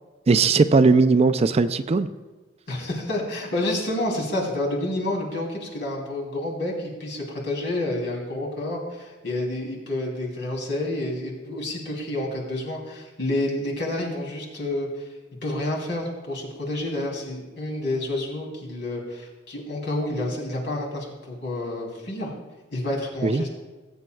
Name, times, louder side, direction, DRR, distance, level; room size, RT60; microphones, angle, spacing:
voice 1, 0.3-2.1 23.2-23.4, right 4 dB, 35° right, 11 dB, 0.4 m, -18 dB
voice 2, 2.7-15.1 15.4-22.3 22.7-23.5, left 1 dB, 65° left, -2 dB, 3.0 m, -29 dB
20.0 x 8.7 x 2.3 m, 1.2 s
head